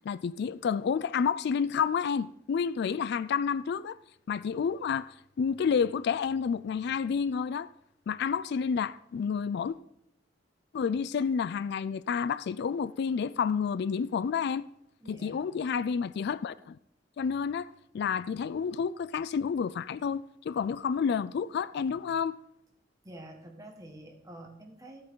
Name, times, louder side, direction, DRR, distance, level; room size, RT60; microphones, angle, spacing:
voice 1, 0.0-4.0 4.3-5.1 5.4-7.7 8.1-9.7 10.7-14.7 15.1-16.8 17.2-22.4, left 6 dB, 60° left, 0.3 m, -30 dB
voice 2, 15.0-15.5 23.0-25.0, right 1 dB, 20° right, 1.7 m, -47 dB
14.0 x 8.6 x 3.8 m
head